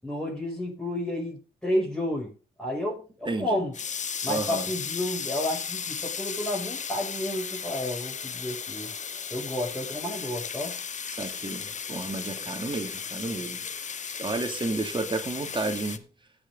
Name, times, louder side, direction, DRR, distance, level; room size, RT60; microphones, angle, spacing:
voice 1, 0.0-2.3 2.6-3.7 4.2-8.9 9.3-10.8, left 1 dB, 5° left, 7.0 m, -31 dB
voice 2, 3.2-3.6 4.3-4.7 11.0-16.0, right 3 dB, 25° right, 2.7 m, -32 dB
sound 1, 3.7-16.0, left 6 dB, 40° left, 0.9 m, -35 dB
16.0 x 6.4 x 4.0 m
hypercardioid pair, 45°, 18 cm